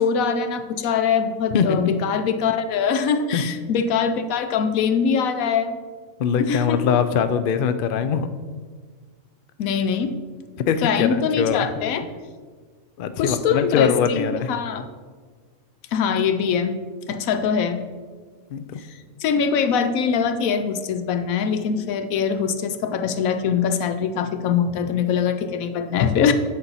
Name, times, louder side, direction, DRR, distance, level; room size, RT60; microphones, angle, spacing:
voice 1, 0.0-5.8 6.3-6.8 9.6-10.2 10.8-12.1 13.2-14.8 15.9-16.7 17.1-17.8 19.2-26.3, left 6 dB, 80° left, 8 dB, 1.1 m, -22 dB
voice 2, 1.5-1.9 3.3-3.4 6.2-8.3 10.6-11.7 13.0-14.6 18.5-18.8, left 7 dB, 65° left, 11 dB, 0.5 m, -22 dB
8.8 x 4.0 x 5.6 m, 1.5 s
omnidirectional pair, 1.4 m